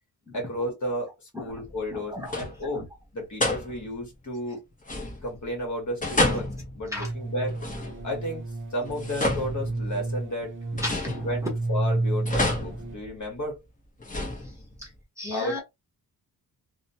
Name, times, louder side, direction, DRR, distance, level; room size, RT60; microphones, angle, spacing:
voice 1, 0.3-2.8 3.1-4.6 5.2-7.5 8.0-8.4 8.7-10.5 11.2-13.6 15.3-15.6, equal, 45° left, 1.2 m, -33 dB
sound 1, 1.5-2.0 2.2-2.8 3.4-4.1 4.8-5.5 6.0-8.3 8.8-10.2 10.8-11.7 12.3-13.5 14.0-14.9, left 1 dB, 20° left, 0.8 m, -30 dB
voice 2, 1.9-2.4 2.7-2.8 6.9-7.1 10.8-11.5 14.4-15.6, left 1 dB, 10° right, 0.9 m, -35 dB
sound 2, 7.0-12.9, right 2 dB, 30° right, 0.5 m, -31 dB
2.9 x 2.1 x 2.7 m
wide cardioid pair, 160°, 39 cm